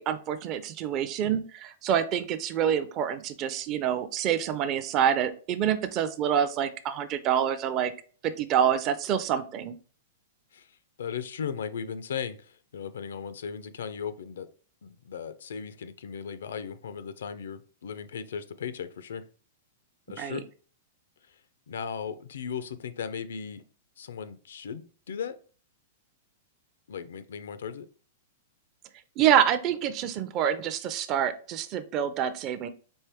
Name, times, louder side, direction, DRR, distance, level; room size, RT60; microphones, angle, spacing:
voice 1, 0.0-7.9 8.2-9.7 20.2-20.4 29.2-32.7, right 9 dB, 30° right, 0.4 m, -27 dB
voice 2, 11.0-14.5 14.8-19.2 20.1-20.4 21.7-23.6 24.0-25.3 26.9-27.9, left 7 dB, 90° left, 0.5 m, -37 dB
4.4 x 3.3 x 3.4 m
supercardioid pair, 160°, 0 cm